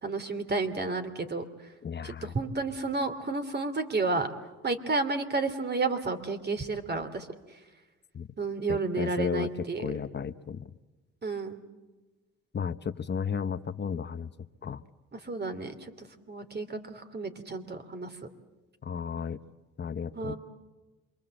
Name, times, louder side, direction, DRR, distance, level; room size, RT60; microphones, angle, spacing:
voice 1, 0.0-1.4 2.0-4.3 4.6-7.3 8.4-9.9 11.2-11.6 15.1-18.2 20.1-20.4, right 3 dB, 35° right, 9 dB, 2.9 m, -31 dB
voice 2, 1.8-2.3 8.1-8.3 8.7-10.7 12.5-14.3 14.6-14.8 18.8-19.4 19.8-20.3, left 6 dB, 35° left, 11 dB, 0.9 m, -34 dB
27.5 x 23.5 x 7.8 m, 1.2 s
cardioid pair, 90°, 30 cm